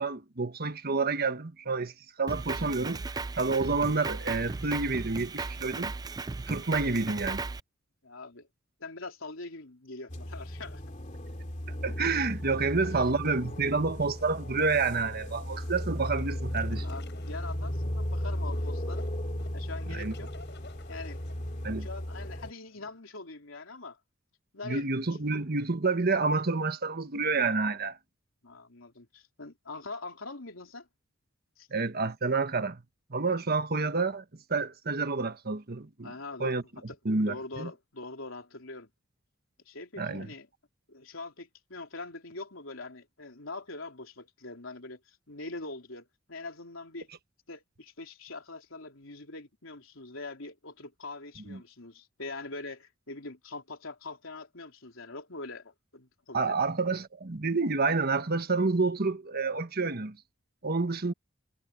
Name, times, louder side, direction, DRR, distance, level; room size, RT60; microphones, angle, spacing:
voice 1, 0.0-3.0 3.3-5.9 6.5-7.4 11.7-16.9 19.9-20.1 21.6-21.9 24.6-28.0 31.7-32.8 33.1-34.2 34.5-36.1 36.4-36.6 37.0-37.7 40.0-40.3 51.5-51.6 56.3-60.2 60.6-61.1, right 3 dB, 50° right, 1.4 m, -29 dB
Drum kit, 2.3-7.6, right 3 dB, 20° right, 0.3 m, -36 dB
voice 2, 8.0-8.5 8.8-10.8 12.9-13.2 16.8-19.1 19.5-20.3 20.9-21.3 21.8-24.0 24.5-25.3 28.4-30.9 31.6-31.7 36.0-36.5 36.9-38.9 39.7-40.5 40.9-47.1 47.5-56.6, left 3 dB, 85° left, 3.6 m, -43 dB
sound 1, 10.1-22.5, equal, 40° left, 2.7 m, -35 dB
sound 2, 12.2-23.0, left 4 dB, 60° left, 7.9 m, -56 dB
head